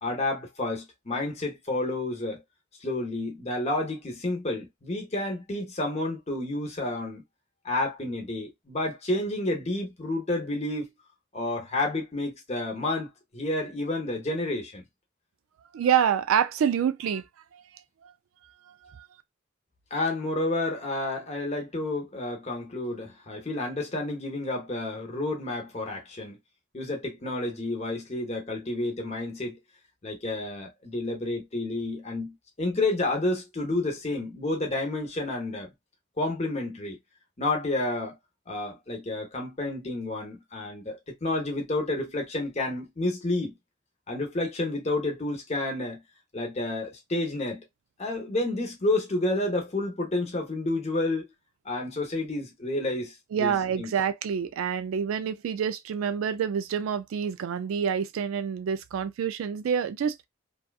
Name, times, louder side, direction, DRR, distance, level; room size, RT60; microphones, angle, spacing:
voice 1, 0.0-2.4 2.8-7.2 7.6-10.9 11.3-14.8 19.9-26.4 26.7-29.6 30.0-35.7 36.2-37.0 37.4-38.2 38.5-43.6 44.1-46.0 46.3-47.6 48.0-51.2 51.6-53.9, left 2 dB, 30° left, 0.8 m, -30 dB
voice 2, 15.7-17.3 17.5-17.6 18.0-18.1 18.7-19.1 53.3-60.3, right 8 dB, 80° right, 0.3 m, -27 dB
2.7 x 2.3 x 2.3 m
head